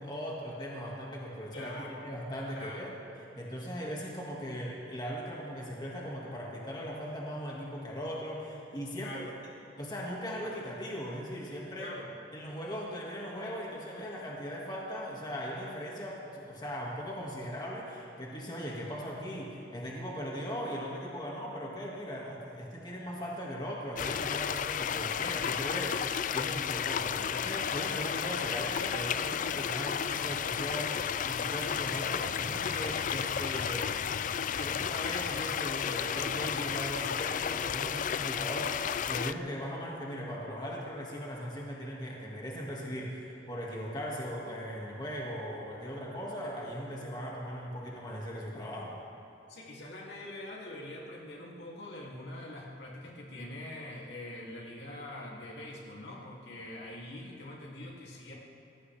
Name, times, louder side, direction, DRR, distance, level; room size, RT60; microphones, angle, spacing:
voice 1, 0.0-1.7 2.0-2.9 3.4-9.3 9.8-11.9 12.3-33.9 34.6-49.0, equal, 25° left, -3 dB, 2.1 m, -39 dB
voice 2, 1.5-2.0 2.5-2.9 9.0-9.3 11.8-12.1 49.5-58.3, left 1 dB, 65° left, -3 dB, 2.8 m, -44 dB
sound 1, 24.0-39.3, left 8 dB, 45° left, 0.4 m, -33 dB
24.0 x 17.5 x 3.5 m, 2.7 s
head